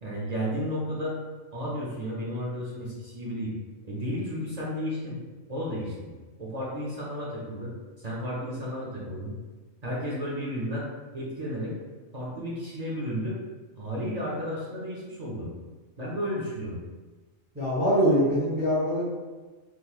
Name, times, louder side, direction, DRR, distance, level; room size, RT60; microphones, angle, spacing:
voice 1, 0.0-1.2 1.5-3.5 3.8-5.2 5.5-6.1 6.4-9.3 9.8-11.7 12.1-13.4 13.8-15.5 16.0-16.8, equal, 45° right, -5 dB, 0.6 m, -33 dB
voice 2, 17.5-19.0, equal, 10° right, -8 dB, 0.8 m, -23 dB
3.8 x 3.0 x 2.3 m, 1.3 s
omnidirectional pair, 1.4 m